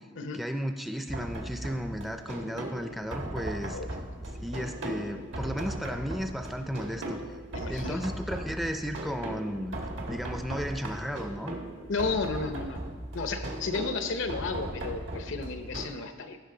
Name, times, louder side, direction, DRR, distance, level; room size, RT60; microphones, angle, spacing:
voice 1, 0.0-3.8 4.4-7.2 7.7-9.8 10.1-11.6, equal, ahead, 6 dB, 0.4 m, -34 dB
sound 1, 1.1-15.9, right 1 dB, 80° right, 1.4 m, -38 dB
voice 2, 7.5-8.1 11.9-12.8 13.1-16.4, left 4 dB, 80° left, 8 dB, 0.7 m, -33 dB
15.0 x 5.9 x 3.8 m, 1.5 s
head